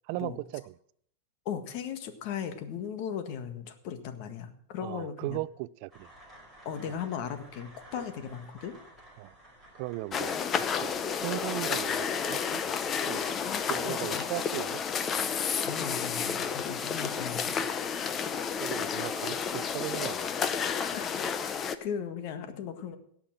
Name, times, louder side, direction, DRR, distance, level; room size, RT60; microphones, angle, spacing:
voice 1, 0.1-0.7 4.8-6.1 6.9-7.0 9.2-9.3 9.7-10.3 10.8-12.6 13.1-13.2 13.6-14.8 18.6-20.3, right 20 dB, 50° right, 0.4 m, -37 dB
voice 2, 1.4-5.4 6.6-8.7 13.4-14.2 15.6-17.6 20.6-23.0, left 8 dB, 50° left, 1.6 m, -38 dB
sound 1, 5.9-12.6, right 1 dB, 5° left, 5.2 m, -53 dB
sound 2, 10.1-21.8, left 6 dB, 25° left, 0.7 m, -31 dB
17.5 x 5.8 x 7.5 m
supercardioid pair, 150°, 0 cm